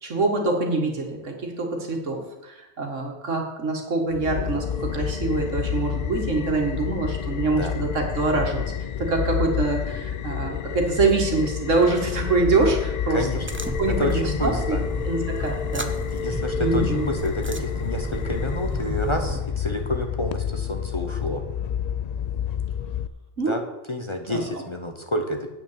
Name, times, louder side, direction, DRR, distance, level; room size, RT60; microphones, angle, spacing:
voice 1, 0.0-8.6 9.0-13.3 13.8-14.8 15.1-15.9 16.6-17.1 23.4-23.6 24.3-24.4, right 3 dB, 85° right, 2 dB, 2.2 m, -25 dB
sound 1, 4.1-23.1, left 8 dB, 90° left, 0.3 m, -29 dB
voice 2, 13.1-13.5 14.0-14.8 16.1-21.4 23.5-23.6 23.9-25.5, left 1 dB, 25° left, 4 dB, 0.9 m, -29 dB
sound 2, 13.4-19.4, right 2 dB, 15° right, 0.4 m, -32 dB
8.9 x 6.9 x 7.4 m, 0.97 s
omnidirectional pair, 1.2 m